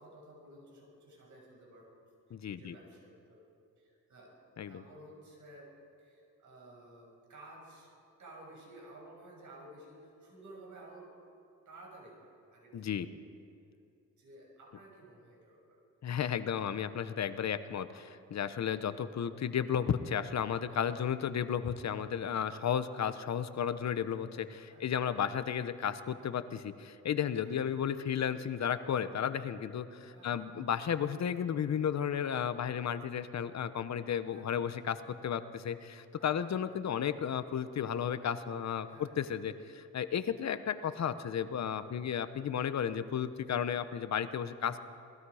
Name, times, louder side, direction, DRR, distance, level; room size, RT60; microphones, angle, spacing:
voice 1, 0.0-2.0 2.5-3.4 3.8-4.4 4.7-5.7 6.0-7.9 8.2-11.1 11.6-12.9 14.2-15.9 22.5-22.6 24.6-24.9 27.4-27.6 30.0-30.5 34.3-34.6 36.2-36.6 38.8-39.1, right 1 dB, 70° right, -1 dB, 6.8 m, -54 dB
voice 2, 2.3-2.7 4.6-4.8 12.7-13.1 16.0-44.8, left 8 dB, 60° left, 11 dB, 1.0 m, -33 dB
27.0 x 20.0 x 5.0 m, 2.5 s
cardioid pair, 105°, 31 cm